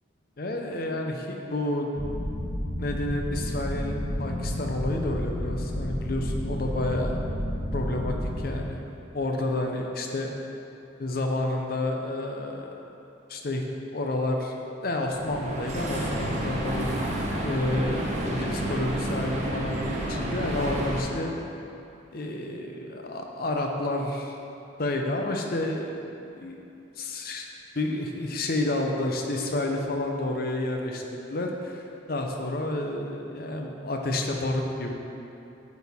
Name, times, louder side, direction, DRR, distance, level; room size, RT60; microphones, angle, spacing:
voice 1, 0.4-1.9 2.8-7.2 7.7-8.8 9.1-10.3 11.0-12.8 13.3-13.6 13.9-14.5 14.8-16.9 17.4-21.3 22.1-24.4 24.8-26.1 26.4-26.6 27.0-27.5 27.7-34.9, left 2 dB, 50° left, 2 dB, 0.6 m, -30 dB
sound 1, 2.0-8.5, equal, 15° left, 1.1 m, -31 dB
sound 2, 15.0-21.0, right 1 dB, 35° right, 0.7 m, -30 dB
8.4 x 4.2 x 3.5 m, 2.8 s
head